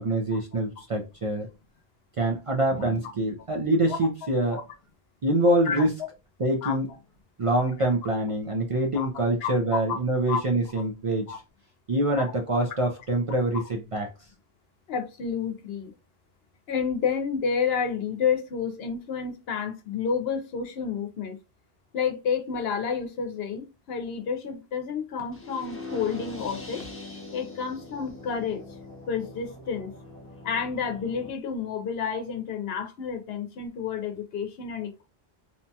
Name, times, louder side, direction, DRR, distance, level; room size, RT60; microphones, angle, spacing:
voice 1, 0.0-1.5 2.2-4.6 5.2-6.0 6.4-6.9 7.4-11.4 11.9-14.3, right 1 dB, 50° right, 0.4 m, -25 dB
voice 2, 9.4-9.8 10.3-10.4 11.3-11.4 14.9-15.9 16.7-21.4 21.9-26.9 27.3-28.6 29.1-29.9 30.4-35.0, left 6 dB, 80° left, 0.9 m, -30 dB
sound 1, 25.3-31.3, left 2 dB, 15° left, 0.6 m, -42 dB
2.8 x 2.2 x 2.7 m
omnidirectional pair, 1.0 m